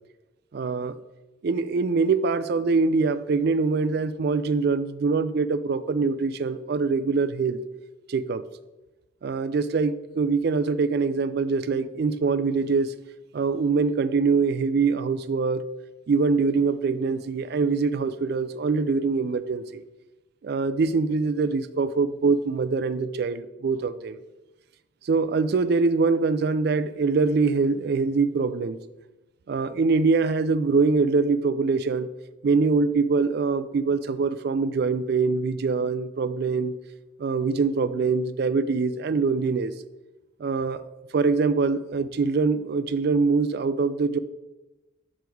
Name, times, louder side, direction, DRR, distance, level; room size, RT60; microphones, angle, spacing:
voice 1, 0.5-0.9 1.4-7.6 8.1-8.4 9.2-12.9 13.3-15.6 16.1-19.8 20.4-24.2 25.0-28.8 29.5-32.1 32.4-36.7 37.2-39.7 40.4-40.8 41.1-44.2, right 4 dB, 55° right, 0.3 m, -24 dB
6.2 x 5.2 x 4.5 m
head